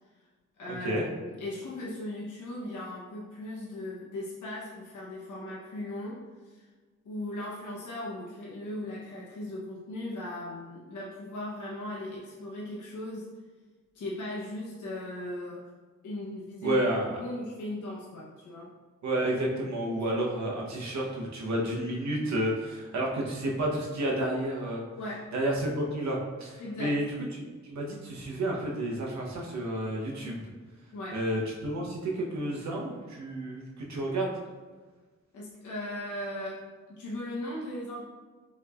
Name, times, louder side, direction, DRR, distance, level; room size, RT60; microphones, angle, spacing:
voice 1, 0.6-6.6 7.0-13.3 13.9-15.6 16.0-18.7 25.0-25.3 26.6-27.0 30.9-31.2 35.3-38.0, left 1 dB, 75° left, -6 dB, 0.9 m, -38 dB
voice 2, 16.6-17.2 19.0-24.8 25.3-27.1 27.7-30.5 31.1-34.3, right 1 dB, 65° right, -2 dB, 0.9 m, -30 dB
5.5 x 3.1 x 2.4 m, 1.4 s
wide cardioid pair, 170°, 30 cm